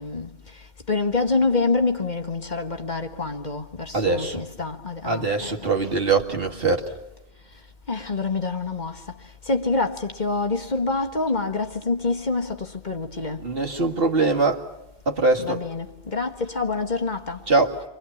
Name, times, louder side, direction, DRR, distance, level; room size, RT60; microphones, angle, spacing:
voice 1, 0.0-5.7 7.9-13.5 15.4-17.4, left 3 dB, 45° left, 1.6 m, -27 dB
voice 2, 3.9-4.4 5.0-6.9 13.4-14.7 15.1-15.6 17.5-17.8, right 3 dB, 60° right, 2.3 m, -22 dB
29.5 x 24.5 x 7.2 m
omnidirectional pair, 1.1 m